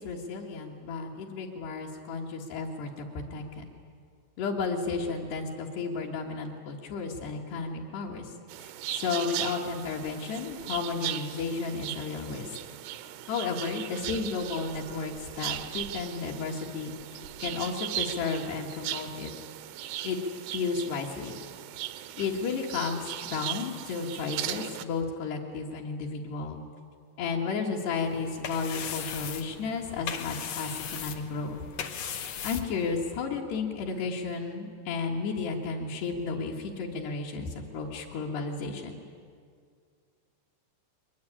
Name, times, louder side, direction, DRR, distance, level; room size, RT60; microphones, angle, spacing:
voice 1, 0.0-3.1 3.3-3.6 4.4-8.3 8.6-12.5 13.3-17.0 17.4-19.3 20.0-20.2 20.5-21.3 22.2-26.6 27.2-31.6 32.4-39.0, left 4 dB, 70° left, -3 dB, 3.6 m, -33 dB
sound 1, 8.5-24.8, right 13 dB, 75° right, 2.6 m, -38 dB
sound 2, 28.1-33.2, left 8 dB, 90° left, 1.5 m, -38 dB
22.5 x 20.0 x 10.0 m, 2.1 s
omnidirectional pair, 5.1 m